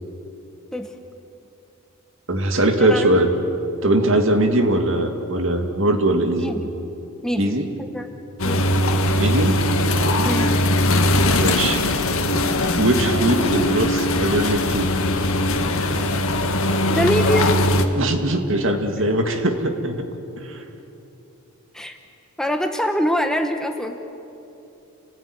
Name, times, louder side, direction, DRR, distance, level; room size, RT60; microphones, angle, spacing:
voice 1, 2.3-3.3 3.8-6.5 7.4-7.7 9.2-9.6 10.9-11.0 11.4-11.8 12.8-14.9 18.0-20.0 20.4-20.6, right 1 dB, 60° right, 5 dB, 2.4 m, -21 dB
voice 2, 6.3-6.7 7.2-8.1 8.4-8.7 10.2-10.5 16.9-17.6 21.7-22.0 22.4-24.0, equal, ahead, 5 dB, 1.1 m, -24 dB
sound 1, 8.4-17.9, left 1 dB, 70° left, 1.8 m, -20 dB
29.0 x 18.5 x 9.7 m, 2.8 s
head